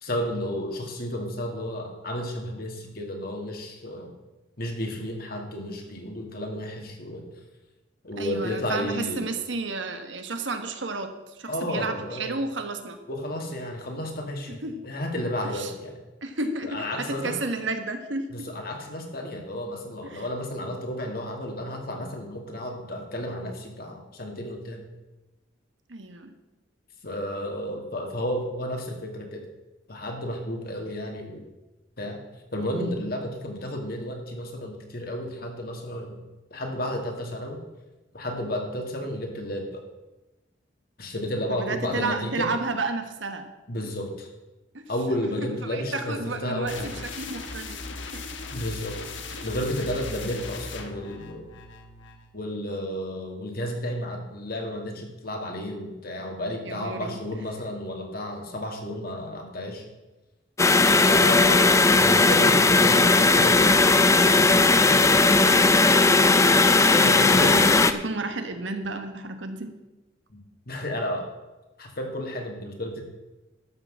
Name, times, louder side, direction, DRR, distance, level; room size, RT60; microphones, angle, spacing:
voice 1, 0.0-4.1 4.6-7.3 8.0-9.3 11.5-12.4 13.1-16.0 16.6-17.4 18.3-24.8 27.0-29.4 29.9-31.4 32.0-32.2 32.5-36.2 36.5-37.6 38.1-39.8 41.0-42.5 43.7-44.3 44.9-46.9 48.5-49.2 49.4-51.5 52.3-59.8 61.0-64.0 64.3-65.6 67.0-67.9 70.3-70.4 70.7-71.3 71.8-73.0, left 1 dB, 55° left, 2 dB, 2.2 m, -32 dB
voice 2, 8.2-13.0 14.5-14.8 15.5-15.7 16.2-18.5 20.0-20.3 25.9-26.3 41.5-43.5 44.7-44.9 45.4-47.8 48.1-48.2 49.4-49.5 56.6-57.2 66.9-69.7, right 3 dB, 80° right, 7 dB, 1.4 m, -32 dB
sound 1, 46.6-52.3, left 3 dB, 80° left, 1.3 m, -38 dB
sound 2, 60.6-67.9, left 3 dB, 15° left, 0.5 m, -17 dB
12.5 x 6.0 x 7.5 m, 1.1 s
head